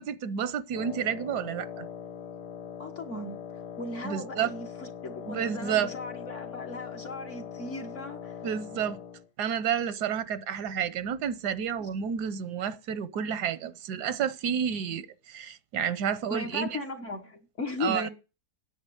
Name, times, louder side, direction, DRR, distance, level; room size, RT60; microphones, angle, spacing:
voice 1, 0.0-1.9 4.0-4.5 5.3-5.9 8.4-9.0 9.4-16.8 17.8-18.1, right 8 dB, 85° right, 1.4 m, -30 dB
Wind instrument woodwind instrument, 0.7-9.3, left 8 dB, 85° left, 1.5 m, -41 dB
voice 2, 2.8-3.4 3.8-8.4 11.8-11.9 16.3-18.1, left 2 dB, 50° left, 1.7 m, -37 dB
9.9 x 6.9 x 9.1 m
omnidirectional pair, 1.7 m